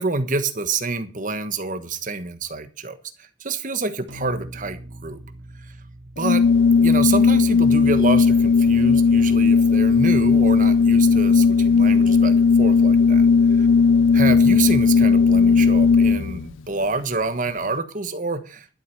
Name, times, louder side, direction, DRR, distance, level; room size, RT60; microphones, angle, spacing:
voice 1, 0.0-5.2 6.2-6.5 6.8-13.3 14.1-18.7, right 3 dB, 40° right, 10 dB, 1.3 m, -27 dB
sound 1, 4.1-8.7, equal, 70° right, 2.4 m, -42 dB
Organ, 6.2-16.5, left 5 dB, 80° left, 0.5 m, -16 dB
12.0 x 8.0 x 6.6 m, 0.37 s
head